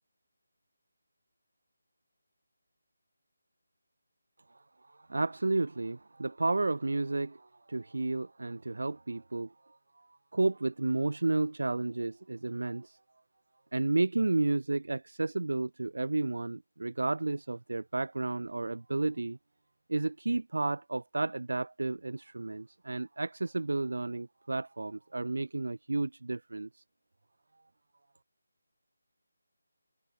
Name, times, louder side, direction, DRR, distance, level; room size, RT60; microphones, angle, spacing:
voice 1, 5.1-7.4 7.7-9.5 10.3-12.9 13.7-19.4 19.9-26.7, right 2 dB, 75° right, 5.9 m, -32 dB
figure-of-eight pair, 175°, 0 cm